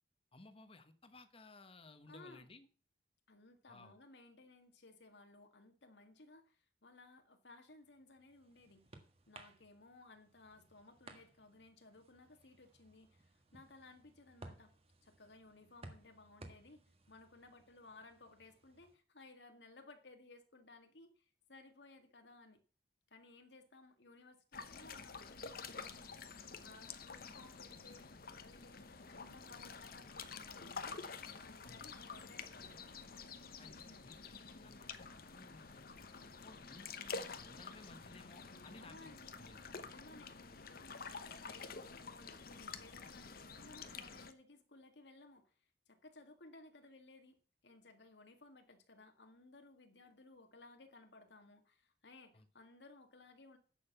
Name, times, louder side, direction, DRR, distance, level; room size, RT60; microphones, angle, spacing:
voice 1, 0.3-2.7 3.7-3.9 31.6-31.9 33.6-39.7 52.3-52.5, left 2 dB, 30° left, 10 dB, 1.2 m, -59 dB
voice 2, 2.1-2.5 3.3-8.9 9.3-14.7 15.0-16.8 17.1-22.6 23.1-26.1 26.6-28.1 28.4-31.0 31.4-32.8 38.5-39.3 39.8-45.5 45.9-47.4 47.6-53.6, left 2 dB, 80° left, 6 dB, 2.0 m, -60 dB
sound 1, 7.8-19.0, right 2 dB, 35° right, 1.7 m, -60 dB
sound 2, 24.5-44.3, left 5 dB, 55° left, 1.0 m, -49 dB
10.0 x 6.7 x 6.8 m, 0.39 s
head